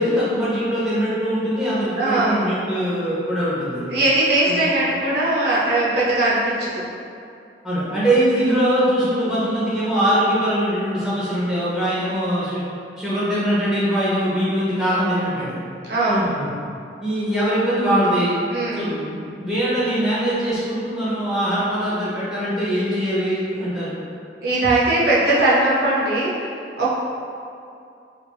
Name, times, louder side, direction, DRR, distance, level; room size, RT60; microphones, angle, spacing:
voice 1, 0.0-3.8 4.4-4.6 7.6-12.6 13.0-15.6 16.1-16.5 17.0-18.4 18.7-23.9, equal, 5° right, -11 dB, 0.7 m, -22 dB
voice 2, 2.0-2.4 3.9-6.9 15.8-16.3 18.5-18.9 24.4-26.3 26.8-26.9, right 2 dB, 55° right, -7 dB, 0.5 m, -19 dB
3.1 x 2.3 x 2.2 m, 2.5 s
head